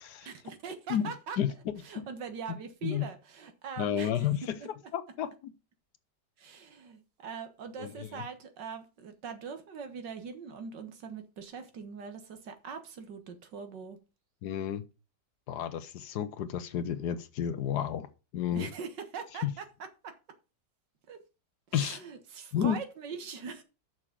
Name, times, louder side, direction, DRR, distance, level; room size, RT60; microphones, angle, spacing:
voice 1, 0.2-1.4 1.8-4.3 4.6-4.7 6.4-14.0 18.5-19.7 20.0-20.1 21.1-21.2 21.7-23.6, right 6 dB, 75° right, 2.0 m, -42 dB
voice 2, 0.9-2.1 2.8-3.1 3.8-4.6 4.9-5.5 7.8-8.2 14.4-14.8 15.5-18.1 18.3-18.7 19.4-19.5 21.7-22.0 22.5-22.8, left 9 dB, 70° left, 1.3 m, -31 dB
6.4 x 6.1 x 7.3 m
omnidirectional pair, 1.9 m